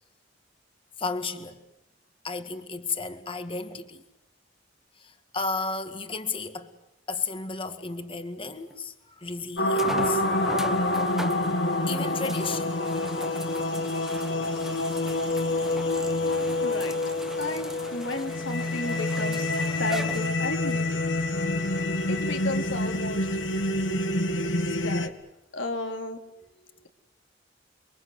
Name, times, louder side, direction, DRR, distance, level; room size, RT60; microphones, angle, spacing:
voice 1, 1.0-1.6 2.2-4.0 5.0-6.7 7.1-10.2 11.9-12.8, left 4 dB, 30° left, 1.9 m, -33 dB
sound 1, 8.7-8.8 9.8-20.8 21.5-21.6 25.1-25.2, right 1 dB, ahead, 1.4 m, -39 dB
sound 2, 9.6-25.1, left 2 dB, 70° left, 2.1 m, -27 dB
voice 2, 16.6-16.9 17.4-21.0 22.1-23.3 24.8-25.1 25.5-26.2, left 2 dB, 90° left, 3.3 m, -34 dB
29.5 x 23.5 x 8.1 m
head